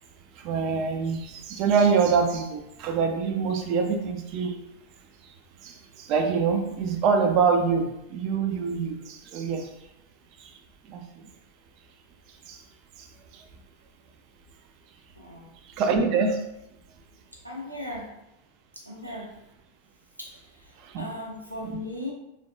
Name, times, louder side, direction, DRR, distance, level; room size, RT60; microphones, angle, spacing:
voice 1, 0.4-4.6 5.6-9.7 10.4-10.5 10.9-11.2 12.5-12.6 13.0-13.1 13.3-13.4 15.8-16.4 20.8-21.1 21.6-21.8, right 5 dB, 40° right, 4 dB, 0.3 m, -25 dB
voice 2, 15.2-15.5 17.4-18.1 18.7-19.3 20.2-22.1, left 1 dB, 85° right, -3 dB, 0.7 m, -38 dB
3.2 x 2.2 x 2.6 m, 0.86 s
figure-of-eight pair, 90°, 0 cm